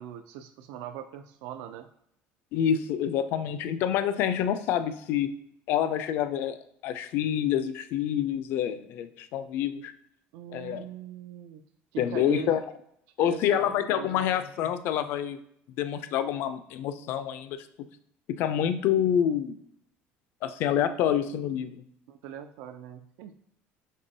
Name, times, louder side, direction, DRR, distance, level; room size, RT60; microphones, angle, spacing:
voice 1, 0.0-1.9 10.3-11.6 11.9-12.5 13.2-14.3 22.1-23.3, right 10 dB, 80° right, 7 dB, 0.3 m, -40 dB
voice 2, 2.5-5.3 5.7-6.6 6.8-9.9 10.5-10.9 12.0-12.6 13.2-15.4 15.8-17.6 18.4-19.5 20.4-21.8, left 9 dB, 55° left, 11 dB, 0.3 m, -27 dB
5.3 x 3.2 x 2.7 m, 0.73 s
cardioid pair, 160°, 4 cm